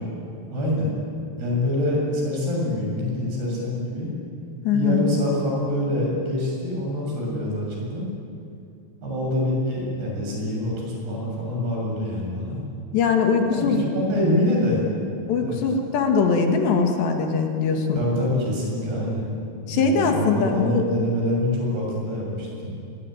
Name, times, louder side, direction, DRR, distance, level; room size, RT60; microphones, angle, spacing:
voice 1, 0.5-1.0 1.4-4.1 4.7-8.0 9.0-12.6 13.5-14.9 15.3-15.6 18.0-19.4 19.7-22.8, left 1 dB, 60° right, -2 dB, 9.1 m, -25 dB
voice 2, 4.7-5.1 12.9-13.8 15.3-18.0 19.7-20.8, left 5 dB, 70° left, 3 dB, 4.1 m, -21 dB
25.0 x 22.0 x 9.1 m, 2.5 s
omnidirectional pair, 5.2 m